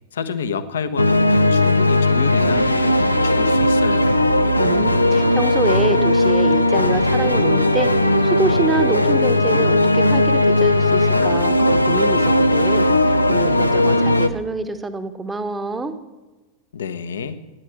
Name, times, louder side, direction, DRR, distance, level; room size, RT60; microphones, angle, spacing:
voice 1, 0.1-4.2 16.7-17.4, left 6 dB, 65° left, 11 dB, 1.0 m, -29 dB
sound 1, 1.0-14.3, left 1 dB, 85° left, 0.7 m, -17 dB
voice 2, 4.6-15.9, right 3 dB, 15° right, 9 dB, 1.1 m, -26 dB
15.0 x 10.5 x 7.3 m, 1.2 s
figure-of-eight pair, 90°, 0 cm